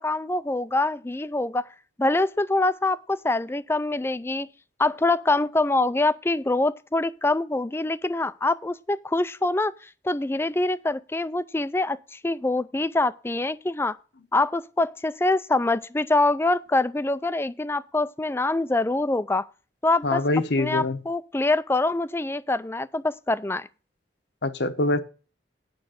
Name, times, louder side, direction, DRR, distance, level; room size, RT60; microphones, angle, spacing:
voice 1, 0.0-1.7 2.0-4.5 4.8-14.0 14.3-19.5 19.8-20.2 20.6-23.7, left 2 dB, 15° left, 0.4 m, -25 dB
voice 2, 20.0-21.0 24.4-25.0, left 2 dB, 60° left, 1.0 m, -24 dB
9.4 x 6.6 x 6.4 m
head